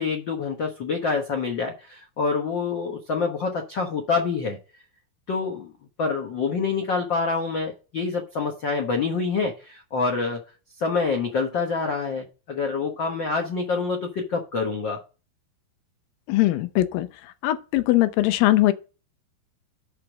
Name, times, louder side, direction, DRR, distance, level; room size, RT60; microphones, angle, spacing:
voice 1, 0.0-4.6 5.3-5.7 6.0-10.4 10.8-15.0, left 4 dB, 55° left, 1.2 m, -26 dB
voice 2, 16.3-17.1 17.4-18.7, left 16 dB, 90° left, 2.5 m, -20 dB
6.6 x 5.8 x 7.2 m
omnidirectional pair, 4.0 m